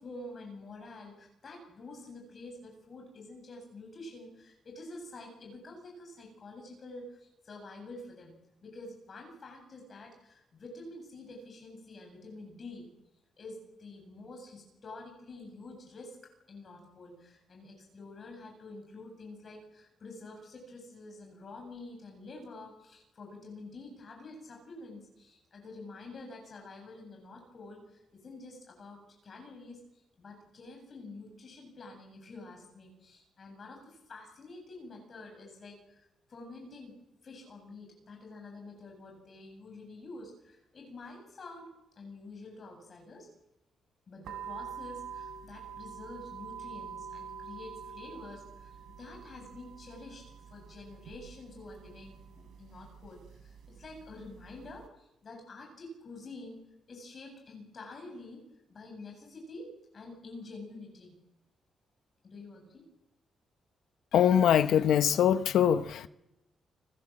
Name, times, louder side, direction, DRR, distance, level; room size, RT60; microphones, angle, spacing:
voice 1, 0.0-8.3 8.6-12.9 13.4-16.2 16.5-37.0 37.2-41.7 42.0-43.3 44.1-50.2 50.5-56.6 56.9-58.4 58.7-61.1 62.2-62.8, left 2 dB, 30° left, 7.9 m, -48 dB
sound 1, 44.2-54.9, right 7 dB, 80° right, 3.2 m, -46 dB
voice 2, 64.1-66.1, left 9 dB, 70° left, 0.8 m, -23 dB
30.0 x 20.5 x 7.7 m
cardioid pair, 175°, 0 cm